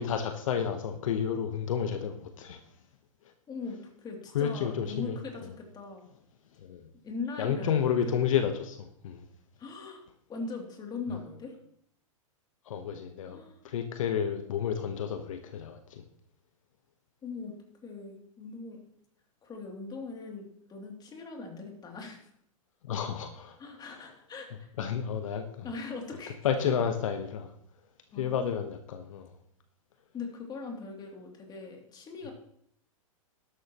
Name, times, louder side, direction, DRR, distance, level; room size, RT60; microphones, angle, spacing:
voice 1, 0.0-2.6 4.3-5.5 6.6-6.9 7.4-9.3 12.6-13.4 13.6-16.0 22.8-23.6 24.8-25.7 26.4-27.5 28.1-29.3, left 8 dB, 65° left, 8 dB, 1.1 m, -31 dB
voice 2, 3.5-6.0 7.0-7.9 9.6-10.0 10.3-11.5 13.2-13.6 17.2-17.5 17.8-18.8 19.4-22.2 23.6-24.7 25.6-26.3 28.1-28.6 30.1-32.3, left 4 dB, 25° left, 1 dB, 2.9 m, -40 dB
13.0 x 11.5 x 3.0 m, 0.66 s
hypercardioid pair, 110°, 18 cm